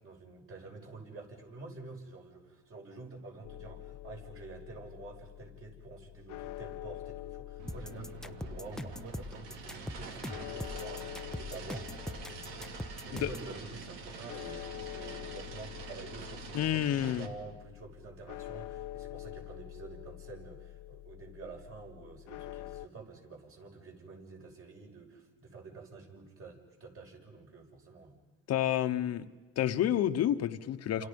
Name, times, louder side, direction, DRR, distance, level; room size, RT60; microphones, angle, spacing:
voice 1, 0.0-28.2 30.9-31.1, right 3 dB, 45° right, 0 dB, 6.6 m, -49 dB
sound 1, 3.4-22.9, left 15 dB, 80° left, 0.9 m, -46 dB
sound 2, 7.6-17.3, right 5 dB, 90° right, 2.6 m, -46 dB
sound 3, 7.7-13.5, equal, ahead, 0.7 m, -41 dB
voice 2, 16.5-17.3 28.5-29.3 29.6-31.1, left 11 dB, 55° left, 8 dB, 1.1 m, -29 dB
29.0 x 28.0 x 5.4 m, 1.3 s
cardioid pair, 110°, 30 cm